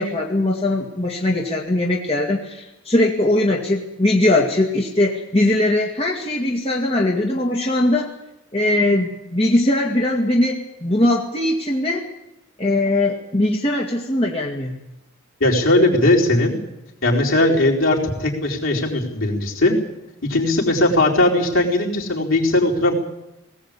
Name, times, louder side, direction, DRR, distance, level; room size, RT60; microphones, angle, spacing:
voice 1, 0.0-8.1 8.5-12.1 12.6-14.8, left 1 dB, 25° left, -1 dB, 2.1 m, -20 dB
voice 2, 15.4-16.5 17.0-19.7 20.3-22.9, left 2 dB, 70° left, -2 dB, 4.6 m, -18 dB
19.5 x 18.0 x 8.6 m, 0.91 s
head